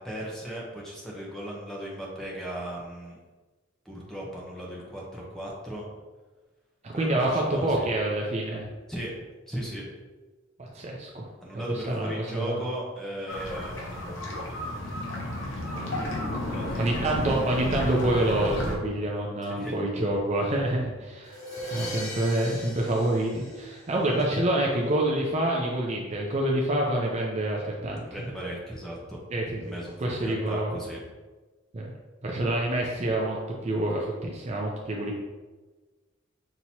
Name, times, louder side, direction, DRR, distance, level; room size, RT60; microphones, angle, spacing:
voice 1, 0.0-3.2 3.9-5.9 6.9-7.8 8.9-9.1 9.5-9.8 11.4-14.3 16.5-17.1 19.4-19.8 28.1-29.2 29.6-31.0, right 1 dB, 5° left, -4 dB, 0.8 m, -37 dB
voice 2, 6.8-8.7 10.6-11.3 11.5-12.6 16.3-21.4 21.7-28.1 29.3-29.7 30.0-30.7 31.7-31.9 32.2-33.4 33.6-35.2, right 1 dB, 35° right, -2 dB, 0.5 m, -27 dB
sound 1, 13.3-18.7, left 1 dB, 80° left, 0.9 m, -32 dB
sound 2, 21.3-24.2, equal, 50° left, 1.1 m, -39 dB
5.9 x 2.9 x 2.8 m, 1.3 s
head